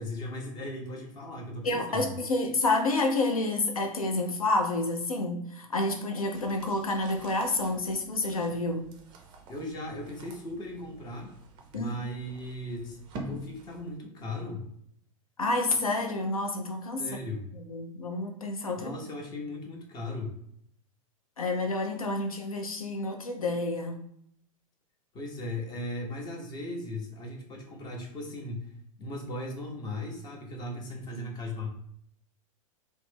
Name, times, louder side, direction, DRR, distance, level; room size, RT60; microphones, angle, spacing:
voice 1, 0.0-2.1 9.5-11.4 11.7-13.0 13.2-14.7 17.0-17.4 18.8-20.4 25.1-31.7, left 1 dB, 25° left, 1 dB, 0.6 m, -37 dB
voice 2, 1.6-8.8 11.7-12.0 15.4-17.0 17.5-18.9 21.4-24.0 31.1-31.2, left 2 dB, 75° left, 3 dB, 0.5 m, -29 dB
sound 1, 6.3-14.0, right 1 dB, 25° right, 0.4 m, -47 dB
2.4 x 2.0 x 3.4 m, 0.69 s
figure-of-eight pair, 95°, 18 cm